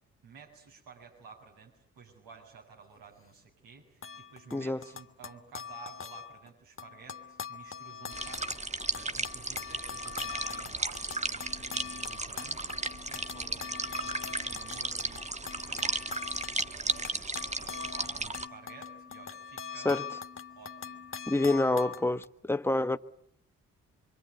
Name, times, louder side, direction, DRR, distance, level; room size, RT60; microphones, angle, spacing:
voice 1, 0.2-19.9 20.5-21.1 22.7-22.9, right 5 dB, 70° right, 7.3 m, -53 dB
sound 1, 4.0-6.5 6.8-22.2, left 6 dB, 35° left, 1.6 m, -43 dB
voice 2, 4.5-4.8 19.8-20.1 21.3-23.0, left 2 dB, 5° left, 1.1 m, -27 dB
sound 2, 8.1-18.5, right 3 dB, 20° right, 1.3 m, -35 dB
25.5 x 25.0 x 9.3 m
hypercardioid pair, 45°, 36 cm